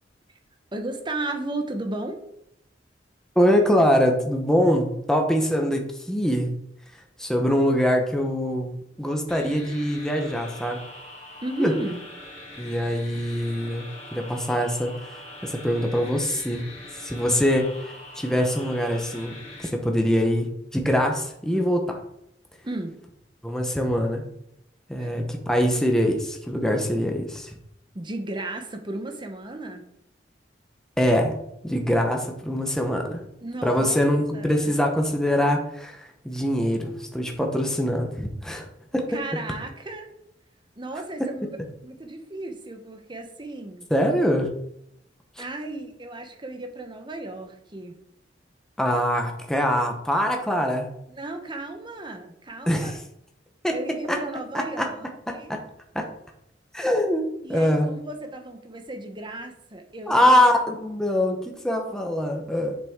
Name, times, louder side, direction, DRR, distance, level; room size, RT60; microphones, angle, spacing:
voice 1, 0.7-2.2 11.4-12.0 22.6-22.9 25.0-25.1 27.9-29.8 33.4-34.0 34.3-34.7 39.1-40.1 40.8-41.5 41.8-43.9 45.4-47.9 51.1-53.0 53.7-55.5 57.4-60.4, right 2 dB, 25° right, 5 dB, 1.0 m, -34 dB
voice 2, 3.3-6.5 6.9-10.8 11.6-11.7 12.6-14.9 15.4-16.6 16.9-22.0 23.4-24.2 24.9-27.6 31.0-31.4 31.6-33.2 33.6-38.7 38.9-39.2 41.2-41.3 43.9-44.5 45.4-45.5 48.8-50.9 52.7-53.0 53.6-53.8 54.1-54.2 54.5-54.9 55.3-55.6 55.9-56.1 56.7-57.9 60.1-62.7, equal, 5° left, 2 dB, 0.9 m, -23 dB
sound 1, 9.3-19.7, left 1 dB, 40° left, 2.4 m, -43 dB
7.7 x 5.8 x 3.6 m, 0.77 s
head